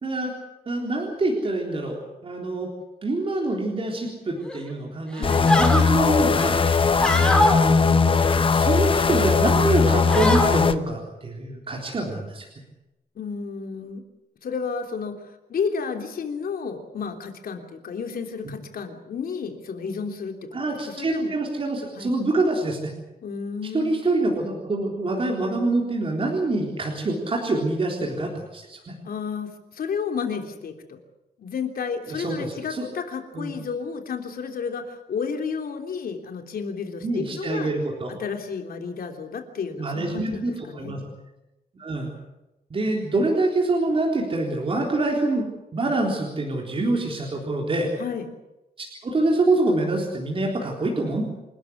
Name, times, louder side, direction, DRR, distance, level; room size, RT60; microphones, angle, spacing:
voice 1, 0.0-0.3 0.7-2.7 3.0-6.6 7.1-12.5 18.5-18.6 20.5-22.9 23.7-28.9 32.1-32.9 33.3-33.5 37.0-38.1 39.8-41.0 41.8-42.1 42.7-47.9 48.8-51.2, right 2 dB, 35° right, 0 dB, 3.9 m, -26 dB
sound 1, 4.5-4.7 5.1-5.9 6.3-7.6 8.1-9.0 9.4-9.6 9.9-10.5, left 1 dB, 5° left, 2.9 m, -25 dB
voice 2, 5.2-5.5 13.2-14.0 14.4-21.3 22.0-22.1 23.2-24.1 29.1-31.0 31.4-37.7 38.2-40.9 48.0-48.3, left 6 dB, 65° left, 4 dB, 3.3 m, -32 dB
sound 2, 5.2-10.8, left 5 dB, 35° left, 1.0 m, -19 dB
27.5 x 13.5 x 9.9 m, 0.95 s
wide cardioid pair, 180°, 16 cm